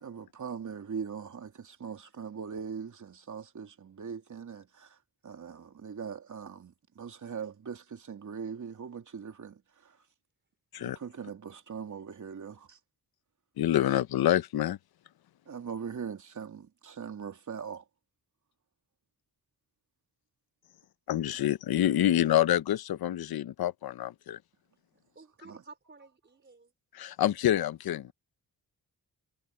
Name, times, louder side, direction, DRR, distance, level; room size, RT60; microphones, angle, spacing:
voice 1, 0.0-4.9 5.2-10.0 10.8-12.8 15.5-17.8, right 6 dB, 55° right, 3.0 m, -41 dB
voice 2, 13.6-14.8 21.1-24.4 26.9-28.1, left 12 dB, 75° left, 0.8 m, -27 dB
voice 3, 25.2-26.7, right 3 dB, 30° right, 5.1 m, -53 dB
cardioid pair, 90°, 37 cm